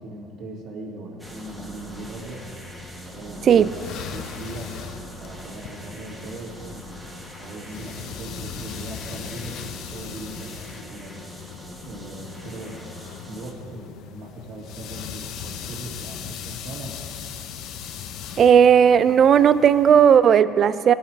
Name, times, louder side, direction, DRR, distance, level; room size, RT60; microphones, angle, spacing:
voice 1, 0.0-2.4 3.0-11.2 11.8-12.8 13.3-17.0, right 1 dB, 55° right, -2 dB, 2.2 m, -39 dB
sound 1, 1.2-13.5, equal, ahead, 1.4 m, -42 dB
sound 2, 3.4-20.2, left 8 dB, 60° left, 0.6 m, -39 dB
voice 2, 18.4-20.9, right 8 dB, 40° right, 15 dB, 0.3 m, -15 dB
18.0 x 6.5 x 4.5 m, 2.7 s
cardioid pair, 120°, 0 cm